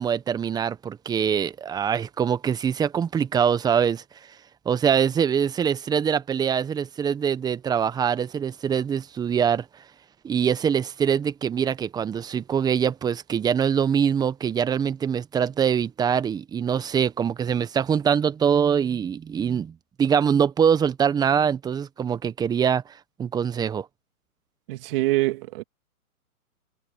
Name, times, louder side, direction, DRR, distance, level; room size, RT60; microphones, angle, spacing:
voice 1, 0.0-4.0 4.6-9.7 10.2-22.8 23.2-23.9, right 7 dB, 10° right, 1.1 m, -23 dB
voice 2, 24.7-25.6, right 20 dB, 40° right, 2.8 m, -24 dB
hypercardioid pair, 140°, 44 cm